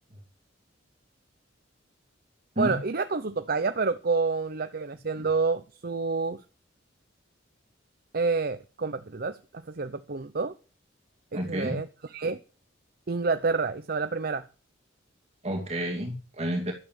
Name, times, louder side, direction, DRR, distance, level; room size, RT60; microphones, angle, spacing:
voice 1, 2.6-6.4 8.1-9.4 9.7-10.5 11.3-12.4 13.1-14.5, right 4 dB, 50° right, 0.8 m, -28 dB
voice 2, 11.3-11.8 15.4-16.7, equal, 35° right, 2.5 m, -30 dB
12.0 x 8.6 x 7.7 m
head